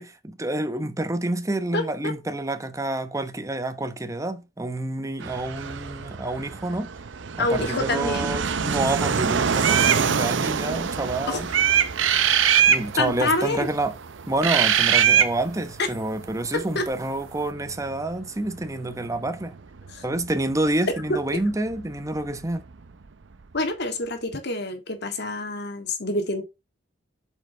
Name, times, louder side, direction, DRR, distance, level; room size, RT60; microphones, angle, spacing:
voice 1, 0.0-6.9 7.4-11.5 12.7-13.9 14.3-19.6 20.0-22.6, right 2 dB, 15° right, 0.9 m, -28 dB
voice 2, 1.7-2.1 7.4-8.3 11.3-11.4 13.0-13.7 15.8-15.9 16.5-16.9 19.9-20.0 23.5-26.4, left 2 dB, 55° left, 1.8 m, -27 dB
Fixed-wing aircraft airplane, 5.2-23.6, right 5 dB, 65° right, 0.6 m, -31 dB
sound 1, 9.6-10.0 11.5-12.8 14.4-15.3, right 9 dB, 80° right, 0.9 m, -19 dB
8.3 x 5.2 x 3.3 m
head